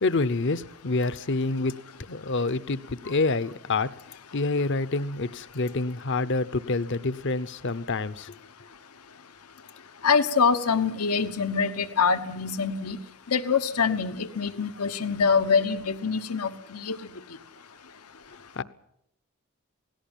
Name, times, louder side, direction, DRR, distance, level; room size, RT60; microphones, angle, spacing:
voice 1, 0.0-1.8 2.1-3.9 4.3-8.4 18.6-18.7, left 3 dB, 55° left, 15 dB, 0.8 m, -27 dB
voice 2, 10.0-13.0 13.3-17.0, left 5 dB, 85° left, 10 dB, 1.2 m, -24 dB
18.0 x 17.0 x 9.0 m, 0.75 s
head